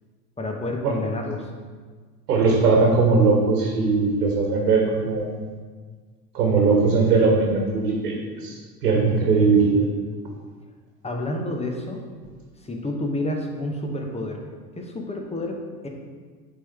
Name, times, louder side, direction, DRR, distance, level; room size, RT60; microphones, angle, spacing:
voice 1, 0.4-1.5 11.0-12.0 12.6-14.4 14.7-15.6 15.8-15.9, left 1 dB, 15° left, 2 dB, 1.1 m, -29 dB
voice 2, 2.3-5.3 6.3-8.5 8.8-9.9, right 4 dB, 70° right, -1 dB, 1.4 m, -19 dB
9.6 x 3.8 x 3.4 m, 1.5 s
figure-of-eight pair, 75°, 48 cm